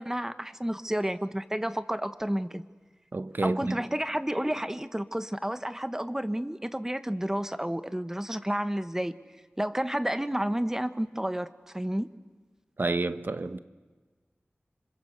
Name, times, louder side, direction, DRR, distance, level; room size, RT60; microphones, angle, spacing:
voice 1, 0.0-2.6 3.4-9.1 9.6-12.1, right 1 dB, 10° right, 1.2 m, -31 dB
voice 2, 3.1-3.8 12.8-13.6, right 2 dB, 55° right, 1.1 m, -29 dB
26.0 x 26.0 x 8.0 m
wide cardioid pair, 60°, 4 cm